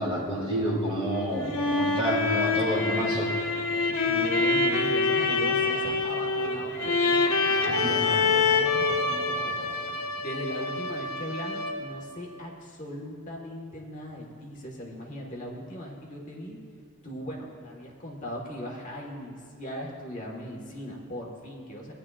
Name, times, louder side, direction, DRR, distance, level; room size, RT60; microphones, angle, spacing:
voice 1, 0.0-3.4 7.8-8.3, equal, 25° right, -3 dB, 2.1 m, -29 dB
sound 1, 1.2-12.0, left 3 dB, 75° left, 0.8 m, -26 dB
sound 2, 1.3-10.1, equal, 70° right, 2.2 m, -43 dB
voice 2, 4.0-7.2 7.6-9.5 10.2-16.6 17.0-21.9, equal, 35° left, -2 dB, 1.4 m, -38 dB
18.0 x 10.0 x 2.4 m, 2.1 s
head